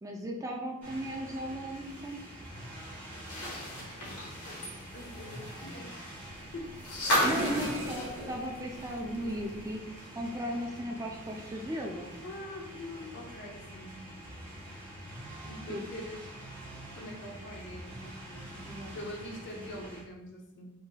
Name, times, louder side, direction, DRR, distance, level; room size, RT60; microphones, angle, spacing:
voice 1, 0.0-2.3 7.2-12.1 15.7-15.8 18.7-18.9, equal, 15° right, 1 dB, 0.3 m, -36 dB
sound 1, 0.8-20.0, right 1 dB, 10° left, 1.2 m, -46 dB
sound 2, 3.1-9.2 9.5-9.6 11.0-11.1, left 1 dB, 85° left, 1.1 m, -34 dB
voice 2, 4.9-6.2 6.5-6.7 10.7-11.0 12.2-13.9 15.4-16.4 16.9-20.7, left 1 dB, 55° left, 0 dB, 0.7 m, -44 dB
sound 3, 6.2-9.8, right 1 dB, 60° right, 1.0 m, -40 dB
4.8 x 2.9 x 2.2 m, 0.95 s
head